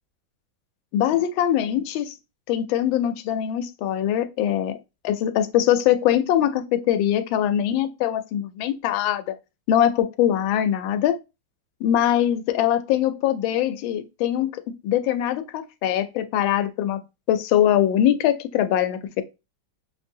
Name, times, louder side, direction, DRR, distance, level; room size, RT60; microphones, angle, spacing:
voice 1, 0.9-2.1 2.5-4.8 5.0-9.3 9.7-11.2 11.8-17.0 17.3-19.2, left 11 dB, 90° left, 1.3 m, -22 dB
6.6 x 2.6 x 2.7 m
omnidirectional pair, 2.1 m